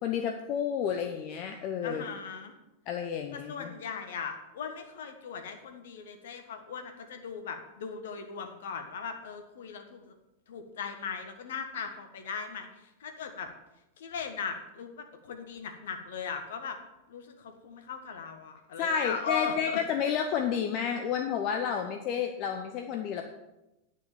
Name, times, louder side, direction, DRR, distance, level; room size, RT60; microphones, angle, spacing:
voice 1, 0.0-2.0 2.9-3.7 18.8-23.2, left 7 dB, 40° left, 4 dB, 0.8 m, -31 dB
voice 2, 1.8-2.5 3.3-10.1 10.5-12.7 13.0-13.5 14.0-16.8 17.1-19.8, left 6 dB, 60° left, 6 dB, 1.5 m, -38 dB
9.8 x 6.4 x 7.3 m, 0.95 s
figure-of-eight pair, 90°, 0 cm